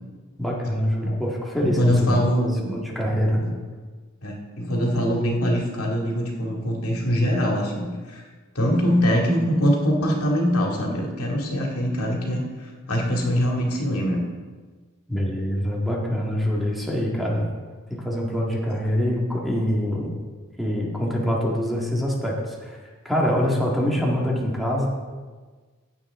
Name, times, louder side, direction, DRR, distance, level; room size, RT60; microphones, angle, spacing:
voice 1, 0.4-2.2 2.7-3.5 15.1-17.5 17.9-20.2 20.6-22.8 23.1-24.9, equal, ahead, -3 dB, 1.8 m, -24 dB
voice 2, 1.6-2.8 3.4-3.5 4.2-8.2 8.5-14.2, equal, 85° left, -1 dB, 2.3 m, -23 dB
15.5 x 8.6 x 3.7 m, 1.4 s
head